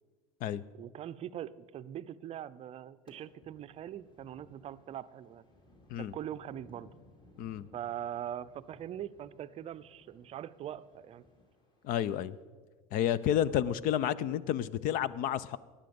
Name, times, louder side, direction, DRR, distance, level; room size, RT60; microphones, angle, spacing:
voice 1, 0.7-5.4 6.0-6.9 7.7-11.2 13.6-13.7, right 10 dB, 35° right, 14 dB, 0.6 m, -42 dB
sound 1, 3.1-12.4, left 1 dB, 25° left, 2.5 m, -61 dB
voice 2, 11.8-12.4 12.9-15.6, left 10 dB, 50° left, 19 dB, 0.6 m, -30 dB
16.0 x 10.0 x 5.3 m, 1.4 s
supercardioid pair, 105°, 18 cm